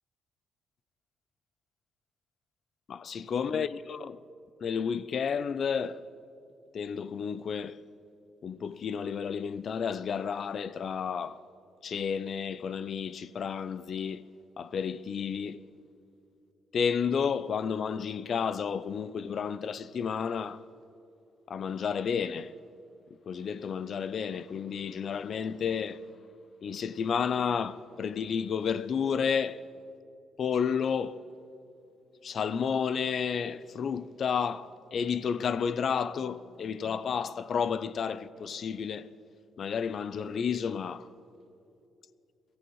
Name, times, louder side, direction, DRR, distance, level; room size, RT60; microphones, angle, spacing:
voice 1, 2.9-4.2 4.6-6.0 6.7-7.8 8.4-11.4 11.8-14.2 14.6-15.6 16.7-20.6 21.5-22.5 23.3-26.0 26.6-29.6 30.4-31.2 32.2-39.1 39.6-41.1, left 7 dB, 55° left, 0.5 m, -31 dB
22.5 x 14.5 x 3.1 m
cardioid pair, 90°, 0 cm